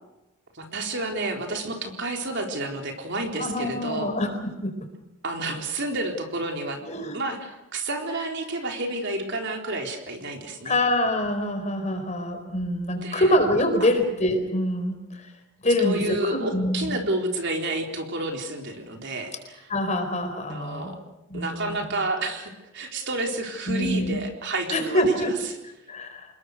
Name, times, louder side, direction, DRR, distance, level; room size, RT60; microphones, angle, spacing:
voice 1, 0.5-4.2 5.2-6.8 7.1-10.8 13.0-13.3 13.8-13.9 15.6-19.7 20.4-21.0 21.3-25.6, right 2 dB, 55° right, 3 dB, 4.0 m, -30 dB
voice 2, 3.4-4.7 6.8-7.3 10.6-15.0 15.6-16.9 19.7-21.0 21.3-21.8 23.7-24.2 24.7-25.3 25.9-26.3, left 1 dB, 35° left, 6 dB, 4.5 m, -25 dB
27.5 x 21.5 x 6.6 m, 0.99 s
head